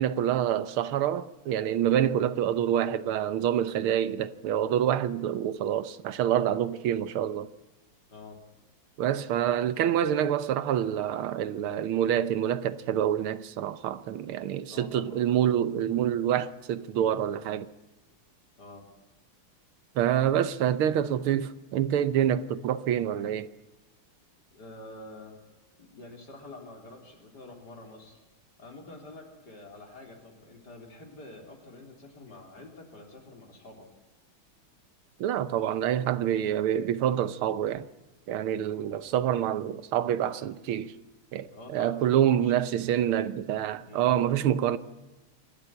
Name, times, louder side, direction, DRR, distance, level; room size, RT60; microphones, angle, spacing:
voice 1, 0.0-7.5 9.0-17.7 20.0-23.5 35.2-37.9 38.3-40.9 41.3-44.8, right 10 dB, 90° right, 1.8 m, -27 dB
voice 2, 14.7-15.3 18.6-18.8 24.5-25.3 25.9-28.2 28.6-33.9 41.5-42.5 43.8-44.1, left 2 dB, 50° left, 4.1 m, -47 dB
26.0 x 12.5 x 9.8 m
omnidirectional pair, 2.3 m